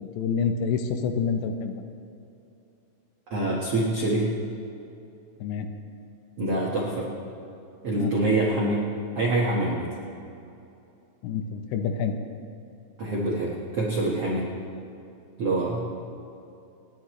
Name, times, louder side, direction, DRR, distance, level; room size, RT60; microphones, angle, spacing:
voice 1, 0.0-1.8 5.4-5.7 7.9-8.1 11.2-12.1, left 6 dB, 80° left, 6 dB, 2.9 m, -27 dB
voice 2, 3.3-4.3 6.4-7.1 7.8-8.8 9.1-9.9 13.0-14.5 15.4-15.8, right 2 dB, 70° right, -5 dB, 1.4 m, -25 dB
29.0 x 10.0 x 3.2 m, 2.7 s
omnidirectional pair, 5.3 m